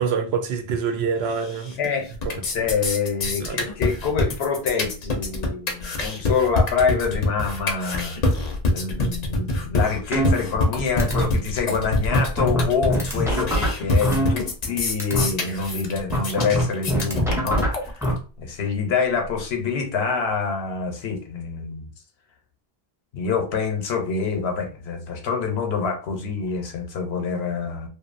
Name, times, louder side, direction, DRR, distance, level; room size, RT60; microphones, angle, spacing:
voice 1, 0.0-1.8 2.2-2.7 3.4-3.7, right 6 dB, 80° right, 0.8 m, -26 dB
sound 1, 1.4-1.9 2.1-18.1, left 2 dB, 50° left, 0.6 m, -25 dB
voice 2, 1.8-8.2 8.7-18.1 18.4-21.9 23.1-27.9, left 5 dB, 85° left, 1.0 m, -26 dB
sound 2, 10.1-10.7 11.0-11.2 11.7-11.8 12.1-14.7 15.0-15.2 16.1-18.1, equal, 5° right, 0.5 m, -23 dB
2.7 x 2.3 x 2.4 m
omnidirectional pair, 1.0 m